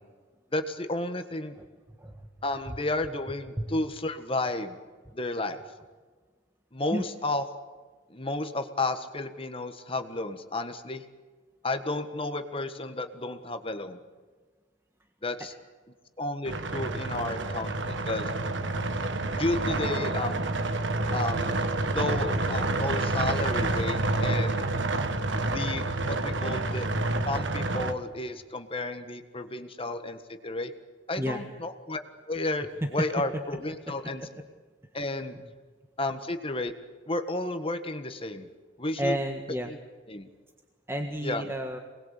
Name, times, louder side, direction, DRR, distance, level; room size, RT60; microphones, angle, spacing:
voice 1, 0.5-1.6 2.4-4.8 5.1-5.6 6.7-7.5 8.1-11.0 11.6-14.0 15.2-15.5 16.2-18.3 19.3-20.4 21.1-21.5 21.9-24.6 25.5-26.9 27.2-30.7 31.1-32.0 32.3-34.3 34.9-35.4 36.0-36.7 37.1-38.5 38.8-39.2 39.6-39.8 40.1-40.3 41.2-41.4, left 2 dB, 30° left, 8 dB, 1.6 m, -32 dB
sound 1, 16.5-27.9, right 2 dB, 80° right, 1.7 m, -28 dB
voice 2, 39.0-39.7 40.9-41.8, equal, 15° right, 3 dB, 1.7 m, -30 dB
28.0 x 21.0 x 8.4 m, 1.4 s
head